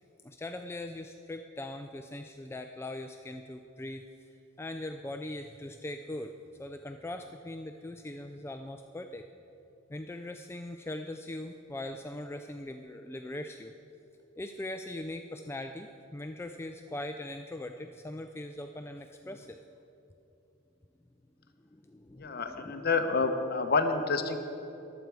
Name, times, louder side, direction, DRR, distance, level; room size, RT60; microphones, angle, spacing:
voice 1, 0.2-4.0 4.6-6.3 6.6-9.2 9.9-13.7 14.4-19.6 21.7-22.9, left 1 dB, 10° left, 5 dB, 0.3 m, -41 dB
voice 2, 22.2-24.4, left 4 dB, 50° left, 7 dB, 0.8 m, -28 dB
22.0 x 8.0 x 4.7 m, 3.0 s
head